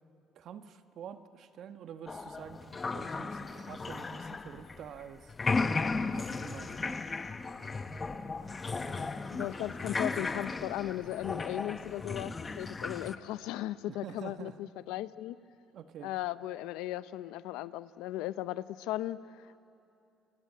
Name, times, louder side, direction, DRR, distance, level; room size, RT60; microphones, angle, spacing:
voice 1, 0.3-5.7 6.1-7.0 13.9-14.6 15.7-16.1, right 8 dB, 65° right, 9 dB, 1.3 m, -47 dB
sound 1, 2.1-5.0 5.3-13.2, left 4 dB, 25° left, 1.0 m, -35 dB
voice 2, 9.3-15.4 16.0-19.6, left 14 dB, 85° left, 15 dB, 0.7 m, -37 dB
29.5 x 22.5 x 8.7 m, 2.8 s
cardioid pair, 100°, 0 cm